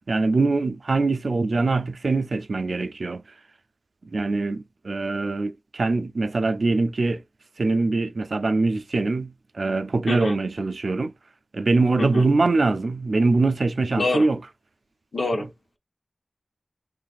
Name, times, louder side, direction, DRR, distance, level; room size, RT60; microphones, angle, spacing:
voice 1, 0.1-3.2 4.0-7.2 7.6-11.1 11.5-14.4, right 3 dB, 75° right, 0.4 m, -23 dB
voice 2, 10.1-10.4 12.0-12.2 14.0-14.3 15.1-15.5, left 2 dB, 85° left, 0.9 m, -25 dB
3.9 x 3.2 x 2.4 m
wide cardioid pair, 50°, 0 cm